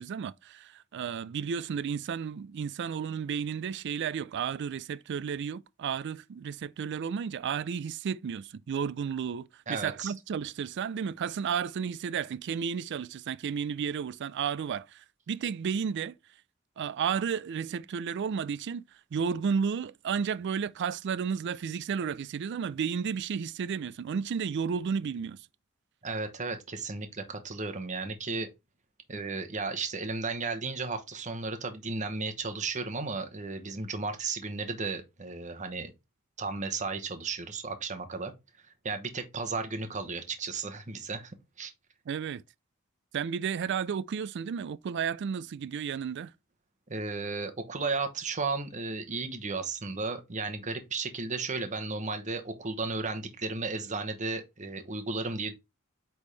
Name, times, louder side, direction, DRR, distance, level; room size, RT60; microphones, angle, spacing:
voice 1, 0.0-16.2 16.8-18.8 19.1-25.5 42.1-42.4 43.1-46.3, right 7 dB, 55° right, 0.3 m, -32 dB
voice 2, 9.7-10.1 26.0-28.5 29.1-35.9 36.4-38.3 38.6-41.3 41.6-41.7 46.9-55.5, right 4 dB, 35° right, 0.9 m, -34 dB
8.3 x 3.5 x 3.2 m
head